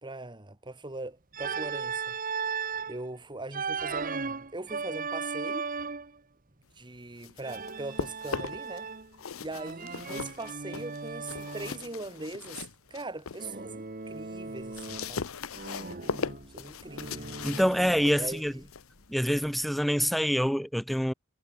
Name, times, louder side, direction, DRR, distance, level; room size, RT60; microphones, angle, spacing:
voice 1, 0.0-2.2 2.9-5.7 6.8-8.9 9.4-15.3 16.5-17.5 18.2-18.6, right 2 dB, 25° right, 1.8 m, -41 dB
Organ, 1.3-3.0 3.5-6.2 7.4-9.2 9.5-11.8 13.4-15.2 15.5-18.2, right 5 dB, 40° right, 1.5 m, -37 dB
sound 1, 7.0-8.8 9.1-13.5 13.9-20.5, left 5 dB, 85° left, 0.8 m, -39 dB
Train, 14.3-20.0, left 1 dB, 65° left, 4.6 m, -61 dB
voice 2, 17.4-18.5 19.1-21.1, equal, ahead, 0.4 m, -26 dB
head